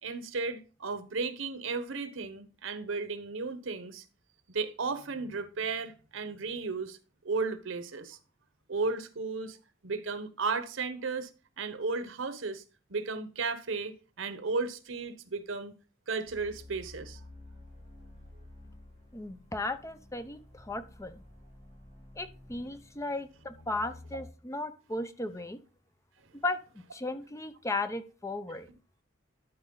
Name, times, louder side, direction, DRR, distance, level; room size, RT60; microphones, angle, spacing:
voice 1, 0.0-4.0 4.5-7.0 7.2-8.2 8.7-9.6 9.8-11.3 11.6-12.6 12.9-15.7 16.1-17.2, right 4 dB, 85° right, 1.0 m, -34 dB
sound 1, 16.2-24.3, left 1 dB, 35° left, 2.7 m, -52 dB
voice 2, 19.1-21.2 22.2-25.6 26.4-28.7, left 2 dB, 15° left, 0.6 m, -36 dB
12.5 x 4.4 x 3.9 m
head